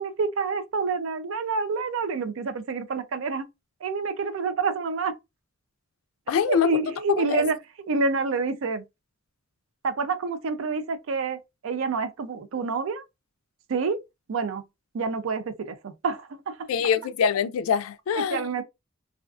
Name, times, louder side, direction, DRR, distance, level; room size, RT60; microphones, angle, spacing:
voice 1, 0.0-3.5 3.8-5.1 6.5-7.6 7.9-8.8 9.8-13.0 13.7-14.0 14.3-14.6 14.9-16.7 18.2-18.6, right 4 dB, 70° right, 0.4 m, -28 dB
voice 2, 6.3-6.7 7.3-7.4 16.7-18.4, left 7 dB, 80° left, 0.3 m, -24 dB
2.3 x 2.3 x 2.3 m
head